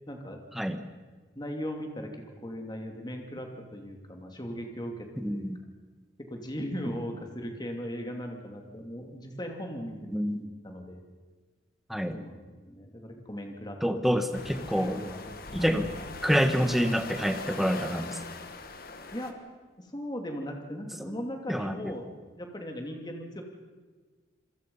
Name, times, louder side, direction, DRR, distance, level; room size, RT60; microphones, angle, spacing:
voice 1, 0.1-0.4 1.3-5.5 6.3-11.0 12.1-13.8 14.7-15.8 19.1-19.4 19.8-22.0 22.4-23.4, equal, 25° left, 3 dB, 2.8 m, -38 dB
voice 2, 5.2-5.6 10.1-10.4 11.9-12.2 13.8-15.0 15.5-15.9 16.2-18.2 21.0-21.2 21.5-21.9, equal, ahead, 7 dB, 1.3 m, -27 dB
sound 1, 14.3-19.3, left 3 dB, 50° left, 1.8 m, -41 dB
27.5 x 21.5 x 5.6 m, 1.4 s
head